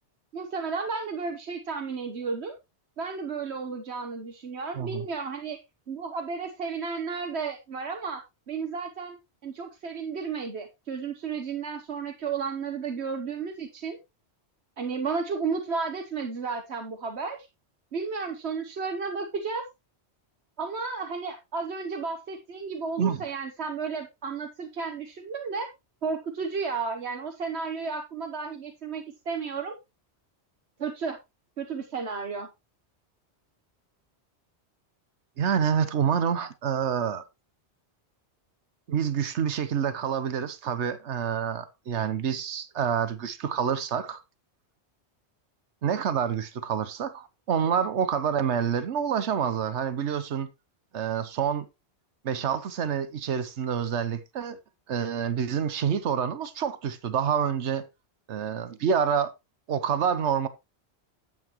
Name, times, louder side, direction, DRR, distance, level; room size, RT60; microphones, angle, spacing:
voice 1, 0.3-2.6 3.0-5.6 5.9-8.2 8.5-14.0 14.8-17.5 17.9-19.6 20.6-25.7 26.0-29.8 30.8-31.2 31.6-32.5, right 5 dB, 70° right, 1.4 m, -33 dB
voice 2, 4.8-5.1 23.0-23.2 35.4-37.2 38.9-44.2 45.8-50.5 50.9-51.7 52.2-54.6 54.9-57.9 58.3-59.3 59.7-60.5, right 7 dB, 90° right, 1.1 m, -27 dB
11.0 x 8.0 x 3.0 m
omnidirectional pair, 1.1 m